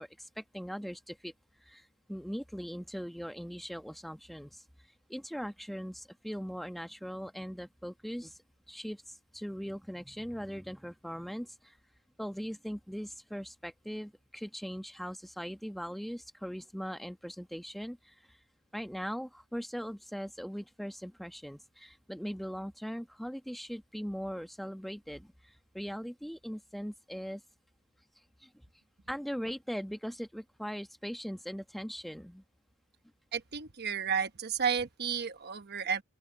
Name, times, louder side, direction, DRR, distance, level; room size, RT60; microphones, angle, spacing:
voice 1, 0.0-1.3 1.6-4.6 5.1-8.4 8.7-11.8 12.2-18.4 18.7-27.4 28.4-28.5 29.1-32.4, equal, ahead, 1.1 m, -40 dB
voice 2, 33.3-36.0, right 7 dB, 50° right, 1.1 m, -32 dB
open air
head